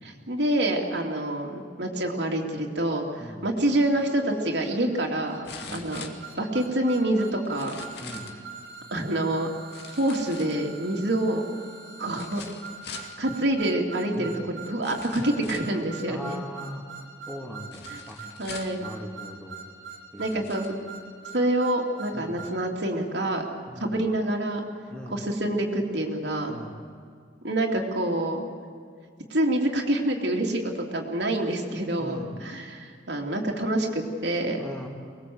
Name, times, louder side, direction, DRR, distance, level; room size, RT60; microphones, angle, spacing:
voice 1, 0.0-5.4 5.7-7.8 8.9-9.5 9.9-11.4 12.0-12.5 13.2-16.3 17.9-18.0 18.4-18.8 20.2-20.7 21.3-23.5 23.8-24.6 25.1-26.5 27.4-28.5 29.3-34.7, right 1 dB, 65° right, 1 dB, 2.8 m, -27 dB
sound 1, 4.0-22.6, right 5 dB, 85° right, 2.5 m, -44 dB
sound 2, 4.1-4.2 5.4-6.7 7.5-8.4 9.7-10.9 12.1-13.2 14.1-14.2 14.8-15.8 17.7-18.9 19.7-19.8 20.2-20.8 21.3-21.4, left 5 dB, 60° left, 2.2 m, -43 dB
voice 2, 8.0-8.3 14.1-14.4 16.1-16.8 17.3-18.2 18.8-19.6 20.1-20.5 22.1-22.4 23.7-24.0 24.9-25.2 26.5-26.8 32.0-32.3 34.6-34.9, equal, 5° left, 0 dB, 2.9 m, -40 dB
24.5 x 20.0 x 7.9 m, 2.1 s
head